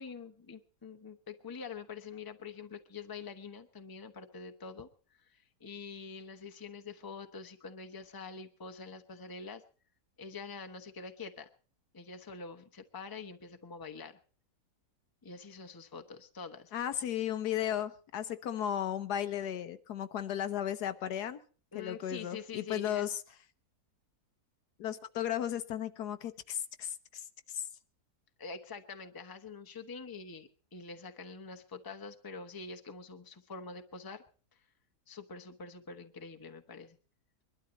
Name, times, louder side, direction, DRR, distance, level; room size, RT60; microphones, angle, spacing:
voice 1, 0.0-4.9 5.3-9.6 10.2-11.5 11.9-14.2 15.2-16.7 21.7-23.1 28.4-34.2 35.1-37.0, left 5 dB, 15° left, 7 dB, 0.9 m, -45 dB
voice 2, 16.7-21.4 21.7-23.2 24.8-27.7, left 10 dB, 80° left, 11 dB, 1.5 m, -35 dB
22.5 x 12.5 x 4.2 m, 0.39 s
omnidirectional pair, 1.7 m